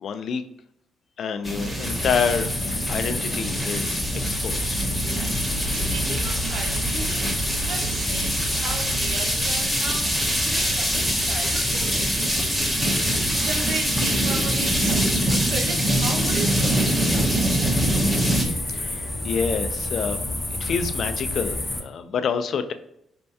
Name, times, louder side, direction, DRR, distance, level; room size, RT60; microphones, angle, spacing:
voice 1, 0.0-0.4 1.2-2.5 2.9-4.8 18.7-20.2 20.6-22.7, left 6 dB, 60° left, 0.4 m, -27 dB
sound 1, 1.4-18.4, right 1 dB, 15° right, 1.3 m, -25 dB
sound 2, 1.8-21.8, left 1 dB, 15° left, 0.8 m, -29 dB
voice 2, 5.7-12.3 12.8-17.8, right 5 dB, 85° right, 0.7 m, -36 dB
4.3 x 3.4 x 2.7 m
cardioid pair, 90°, 0 cm